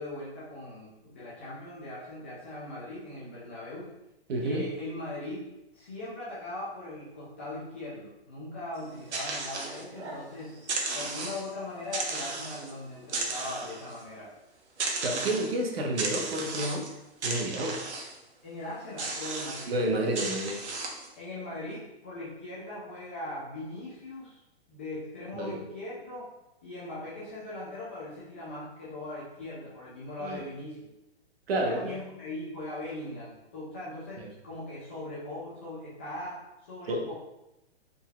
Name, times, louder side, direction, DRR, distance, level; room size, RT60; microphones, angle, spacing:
voice 1, 0.0-3.9 4.4-5.5 5.7-10.6 10.9-14.3 18.4-19.7 21.2-24.4 24.7-26.3 26.6-30.9 31.5-37.1, left 2 dB, 10° left, -9 dB, 0.3 m, -40 dB
voice 2, 4.3-4.6 15.0-16.8 17.2-17.8 19.7-20.6 25.3-25.6 30.2-30.4 31.5-32.0 34.2-34.3 36.9-37.1, right 1 dB, 60° right, 2 dB, 1.1 m, -30 dB
sound 1, 8.8-10.2 10.6-11.5 11.9-12.7 13.0-14.0 14.8-15.5 16.0-16.9 17.2-18.2 19.0-19.7 20.1-21.1, right 3 dB, 80° right, 1.2 m, -34 dB
5.3 x 4.0 x 2.4 m, 0.91 s
hypercardioid pair, 160°, 33 cm